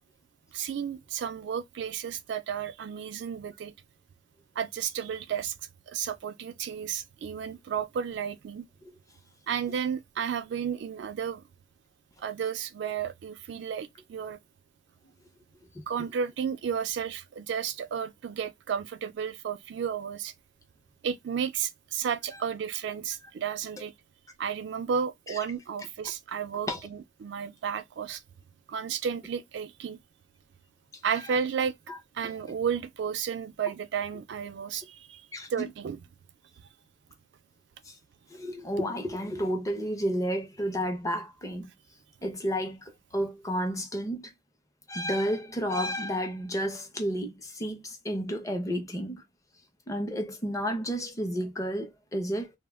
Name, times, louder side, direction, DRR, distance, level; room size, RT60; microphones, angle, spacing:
voice 1, 0.5-3.7 4.6-5.5 5.9-8.7 9.5-11.4 12.2-14.4 15.9-20.3 21.0-23.9 24.4-28.2 28.7-30.0 31.0-31.7 32.1-35.2 35.5-36.0, right 7 dB, 65° right, 0.3 m, -32 dB
voice 2, 38.3-41.7 42.2-42.8 43.1-44.3 44.9-49.2 49.9-52.5, equal, 20° left, 0.6 m, -31 dB
2.1 x 2.1 x 3.3 m
head